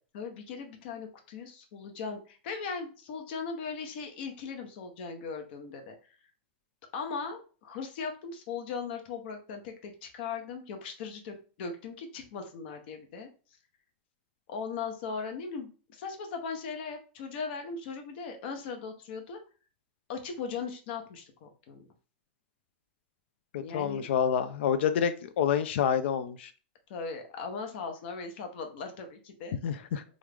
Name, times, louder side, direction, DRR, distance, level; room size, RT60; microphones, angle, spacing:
voice 1, 0.1-5.9 6.9-13.3 14.5-19.4 20.1-21.9 23.6-24.1 26.9-29.6, left 5 dB, 65° left, 4 dB, 0.8 m, -38 dB
voice 2, 23.5-26.5 29.6-30.0, left 8 dB, 80° left, 11 dB, 0.4 m, -28 dB
3.1 x 2.4 x 3.4 m, 0.36 s
supercardioid pair, 145°, 6 cm